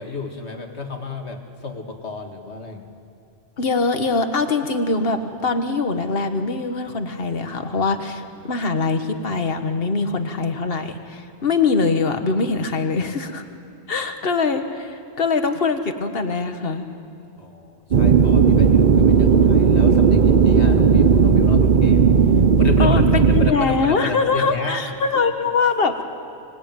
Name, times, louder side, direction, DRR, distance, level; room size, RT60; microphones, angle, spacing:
voice 1, 0.0-2.9 17.4-22.0 22.6-24.8 25.1-25.2, left 4 dB, 75° left, 4 dB, 2.3 m, -31 dB
voice 2, 3.6-13.4 13.9-16.8 22.8-26.0, left 4 dB, 55° left, 7 dB, 1.7 m, -23 dB
sound 1, 17.9-23.5, right 6 dB, 50° right, 0.9 m, -15 dB
26.0 x 19.5 x 9.2 m, 2.6 s
omnidirectional pair, 1.1 m